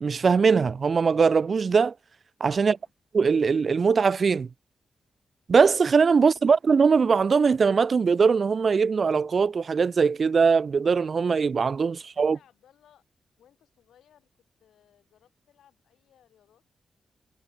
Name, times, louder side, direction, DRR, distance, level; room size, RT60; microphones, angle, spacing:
voice 1, 0.0-1.9 2.4-2.8 3.1-4.5 5.5-12.4, right 5 dB, 55° right, 0.4 m, -21 dB
voice 2, 2.5-2.9 6.1-6.5 12.0-13.0 13.4-14.3 14.6-16.8, left 10 dB, 85° left, 6.6 m, -62 dB
cardioid pair, 50°, 0 cm